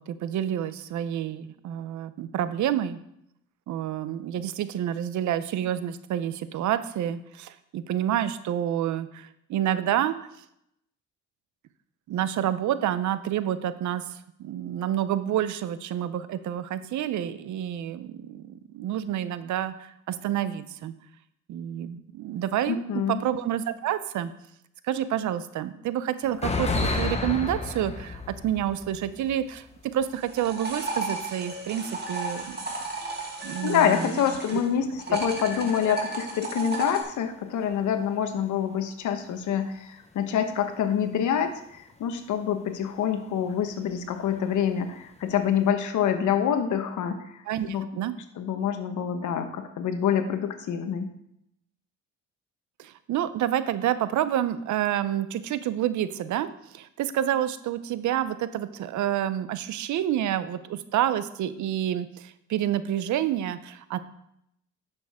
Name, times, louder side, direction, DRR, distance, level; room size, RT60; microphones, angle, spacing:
voice 1, 0.0-3.0 3.7-10.2 12.1-20.9 21.5-24.3 24.8-32.6 33.4-34.2 34.5-34.6 47.5-48.1 52.8-56.5 56.7-64.0, right 11 dB, 75° right, 13 dB, 0.7 m, -28 dB
voice 2, 22.7-23.2 33.6-47.9 48.4-51.1, left 8 dB, 75° left, 7 dB, 1.1 m, -26 dB
sound 1, 26.2-30.9 31.1-31.2 32.4-32.6 34.8-36.1 37.1-37.3 37.7-37.8 38.3-38.4 40.2-40.3 41.0-41.1 43.5-43.7 44.3-44.6 45.1-45.7, left 3 dB, 20° left, 1.0 m, -32 dB
sound 2, 30.1-34.7 35.0-37.0, right 3 dB, 35° right, 2.1 m, -34 dB
9.6 x 6.8 x 3.6 m, 0.78 s
cardioid pair, 90°, 30 cm